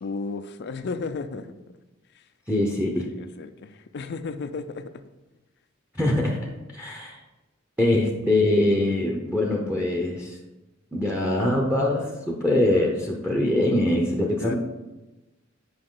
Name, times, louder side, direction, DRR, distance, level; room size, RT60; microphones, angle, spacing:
voice 1, 0.0-1.5 2.1-2.2 3.0-4.9 14.4-14.5, left 4 dB, 55° left, 11 dB, 0.4 m, -33 dB
voice 2, 2.5-3.1 5.9-6.4 6.7-7.2 7.8-10.4 10.9-14.5, left 1 dB, 5° right, -1 dB, 0.8 m, -23 dB
8.7 x 5.4 x 3.8 m, 1.1 s
head